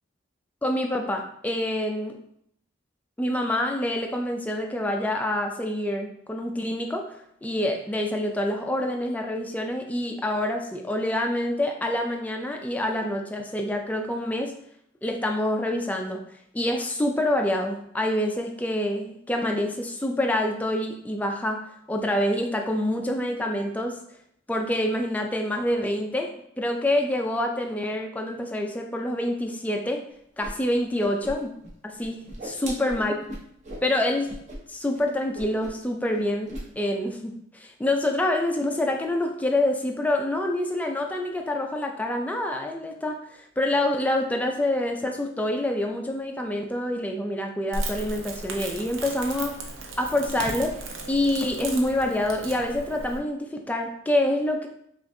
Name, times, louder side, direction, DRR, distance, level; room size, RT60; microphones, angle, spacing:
voice 1, 0.6-2.2 3.2-7.1 7.4-14.5 15.0-16.2 16.5-21.6 21.9-24.0 24.5-26.3 26.6-30.0 30.4-31.5 31.8-33.1 33.8-34.3 34.7-36.5 36.8-49.6 50.0-50.8 51.1-54.7, left 1 dB, 10° left, 2 dB, 0.3 m, -26 dB
Whoosh swoosh swish, 30.4-30.5 30.8-31.7 32.0-33.9 34.3-34.6 34.8-35.0 35.3-35.9 36.1-36.7, right 1 dB, 35° right, 0.8 m, -38 dB
Crackle, 47.7-53.2, right 2 dB, 85° right, 0.7 m, -35 dB
5.7 x 2.5 x 2.6 m, 0.70 s
head